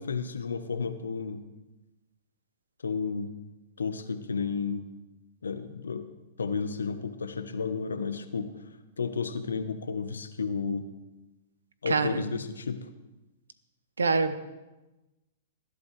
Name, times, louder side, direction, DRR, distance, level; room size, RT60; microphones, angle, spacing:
voice 1, 0.0-1.5 2.8-3.3 3.8-4.9 5.4-6.1 6.4-8.5 9.0-10.9 11.8-12.9, left 5 dB, 85° left, 10 dB, 1.0 m, -32 dB
voice 2, 11.9-12.3 14.0-14.4, right 4 dB, 90° right, 13 dB, 0.9 m, -25 dB
19.5 x 11.0 x 3.3 m, 1.1 s
hypercardioid pair, 115°, 0 cm